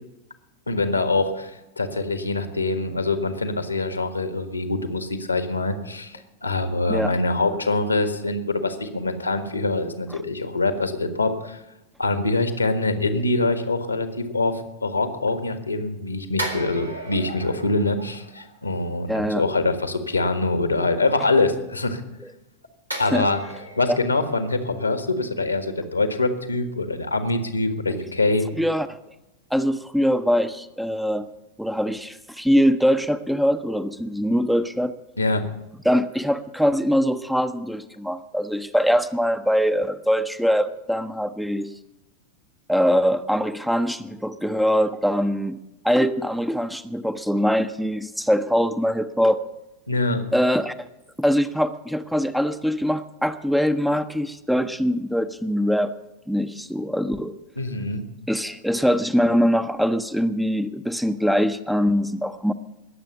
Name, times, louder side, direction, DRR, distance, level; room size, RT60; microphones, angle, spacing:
voice 1, 0.7-11.6 12.0-22.0 23.0-23.4 23.8-28.4 35.2-35.4 49.9-50.2 57.6-58.0, left 2 dB, 80° left, 9 dB, 1.5 m, -24 dB
sound 1, 16.4-19.1 22.9-26.1 26.4-26.6, right 1 dB, 90° right, 2.2 m, -37 dB
voice 2, 19.1-19.4 23.1-23.3 23.9-24.0 27.9-28.0 28.5-28.9 29.5-31.3 31.6-34.9 35.8-41.7 42.7-45.6 45.8-49.4 50.3-50.7 51.2-55.9 56.3-57.3 58.3-62.5, equal, ahead, 11 dB, 0.6 m, -22 dB
20.5 x 7.7 x 7.0 m, 0.94 s
figure-of-eight pair, 90°, 0 cm